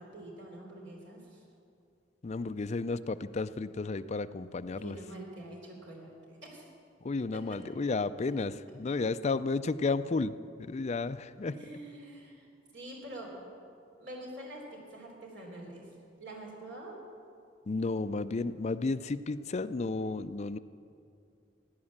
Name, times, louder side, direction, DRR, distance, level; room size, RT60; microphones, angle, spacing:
voice 1, 0.0-1.4 4.8-6.7 7.3-7.9 8.7-8.9 11.5-12.5 12.7-13.4 14.0-17.0, right 1 dB, 75° right, 0 dB, 3.3 m, -46 dB
voice 2, 2.2-5.0 7.0-10.3 10.6-11.5 17.7-20.6, left 3 dB, 35° left, 11 dB, 0.4 m, -32 dB
16.0 x 9.6 x 7.3 m, 2.5 s
head